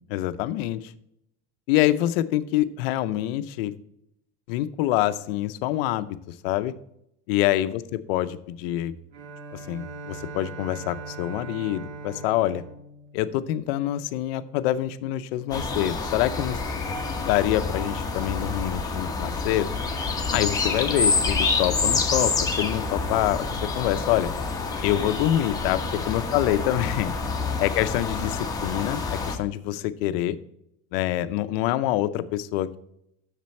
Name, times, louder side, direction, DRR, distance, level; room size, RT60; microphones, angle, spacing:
voice 1, 0.1-0.9 1.7-3.7 4.5-6.7 7.3-8.9 9.5-12.6 13.1-16.6 17.3-19.7 20.3-24.3 24.8-27.1 27.6-30.4 30.9-32.8, left 13 dB, 85° left, 13 dB, 0.7 m, -26 dB
Bowed string instrument, 9.1-14.2, right 4 dB, 65° right, 1.3 m, -41 dB
sound 1, 15.5-29.4, left 4 dB, 10° left, 1.2 m, -27 dB
7.5 x 6.7 x 4.2 m, 0.77 s
cardioid pair, 140°, 29 cm